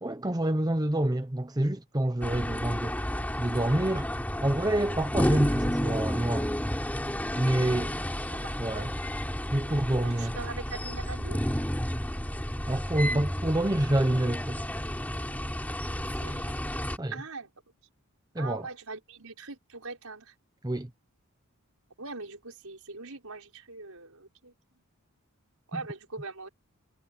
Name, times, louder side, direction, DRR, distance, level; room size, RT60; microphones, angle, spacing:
voice 1, 0.0-3.1 3.4-4.1 4.4-6.5 7.3-7.9 8.6-8.9 9.5-10.3 12.7-14.7 17.0-17.1 18.3-18.7 20.6-20.9 25.7-25.8, right 1 dB, 15° right, 0.9 m, -27 dB
sound 1, 2.2-17.0, equal, 5° left, 4.1 m, -31 dB
voice 2, 8.3-8.9 10.0-11.4 16.1-16.5 17.1-17.5 18.4-20.3 22.0-24.5 25.7-26.5, right 3 dB, 75° right, 5.1 m, -41 dB
head